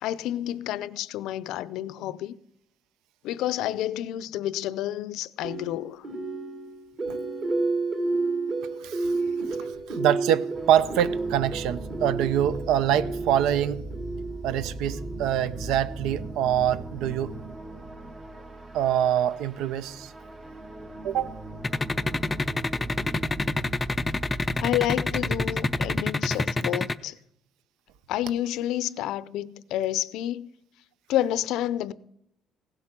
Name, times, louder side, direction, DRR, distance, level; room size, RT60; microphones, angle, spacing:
voice 1, 0.0-2.4 3.2-6.1 24.6-27.2 28.1-30.5 31.1-31.9, left 13 dB, 75° left, 0.5 m, -29 dB
sound 1, 5.4-15.5, right 3 dB, 40° right, 2.3 m, -31 dB
voice 2, 8.8-9.1 9.9-13.8 14.4-17.3 18.7-20.1 21.0-21.3, right 10 dB, 80° right, 0.6 m, -25 dB
sound 2, 10.5-26.0, right 2 dB, 15° right, 0.7 m, -39 dB
sound 3, 21.6-26.9, left 2 dB, 15° left, 0.4 m, -26 dB
16.5 x 7.8 x 6.0 m
cardioid pair, 155°, 0 cm